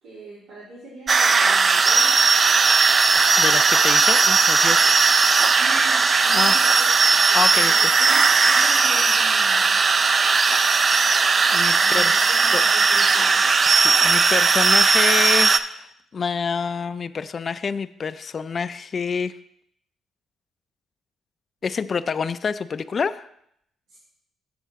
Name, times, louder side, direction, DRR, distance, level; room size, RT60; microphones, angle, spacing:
voice 1, 0.0-2.2 5.6-9.8 11.8-13.7 23.9-24.0, right 2 dB, 85° right, -10 dB, 3.0 m, -41 dB
sound 1, 1.1-15.6, right 4 dB, 40° right, 0.4 m, -17 dB
voice 2, 3.2-5.0 6.3-6.6 7.3-7.9 11.5-12.6 13.7-19.3 21.6-23.3, left 5 dB, 45° left, 13 dB, 0.3 m, -27 dB
7.5 x 7.0 x 3.6 m, 0.72 s
cardioid pair, 90°, 0 cm